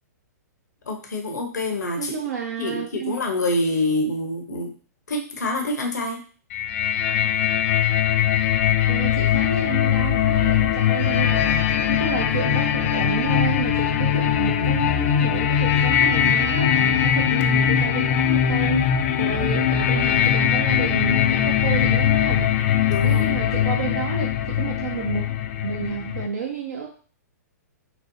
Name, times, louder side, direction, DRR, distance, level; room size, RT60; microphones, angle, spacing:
voice 1, 0.9-2.1 2.6-4.7 5.1-6.2 22.8-23.4, left 2 dB, 75° left, 2 dB, 0.9 m, -26 dB
voice 2, 2.0-3.1 8.9-22.5 23.0-25.2 25.6-26.9, right 6 dB, 75° right, -1 dB, 0.7 m, -30 dB
sound 1, 6.5-26.3, left 9 dB, 45° left, 0.4 m, -21 dB
4.1 x 2.1 x 3.0 m, 0.40 s
hypercardioid pair, 115°, 9 cm